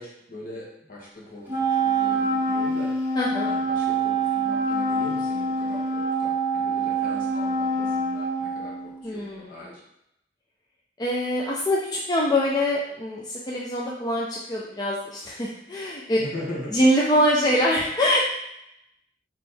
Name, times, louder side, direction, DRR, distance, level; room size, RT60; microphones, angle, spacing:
voice 1, 0.0-9.8 16.2-16.7, left 1 dB, 50° left, -5 dB, 1.4 m, -40 dB
Wind instrument woodwind instrument, 1.5-9.1, right 3 dB, 10° right, 1.0 m, -25 dB
voice 2, 3.2-3.5 9.0-9.6 11.0-16.2 16.7-18.2, equal, 20° left, -3 dB, 0.4 m, -24 dB
3.4 x 3.1 x 4.3 m, 0.82 s
head